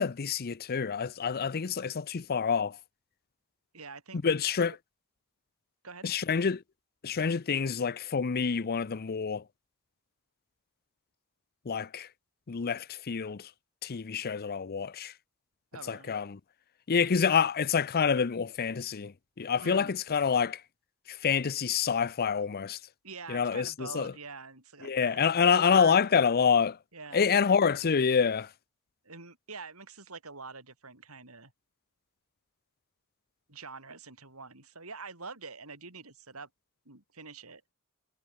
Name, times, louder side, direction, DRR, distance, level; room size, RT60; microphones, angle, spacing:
voice 1, 0.0-2.8 4.2-4.8 6.0-6.6 7.0-9.4 11.7-12.1 12.5-13.5 13.8-15.1 15.9-16.4 16.9-20.6 21.1-22.8 23.3-24.1 24.8-26.8 27.1-28.5, left 6 dB, 45° left, 0.6 m, -27 dB
voice 2, 3.7-4.2 4.5-4.8 5.8-6.1 15.7-16.1 19.6-19.9 23.0-26.0 26.9-27.4 29.0-31.5 33.5-36.5 36.8-37.7, right 4 dB, 80° right, 6.7 m, -45 dB
head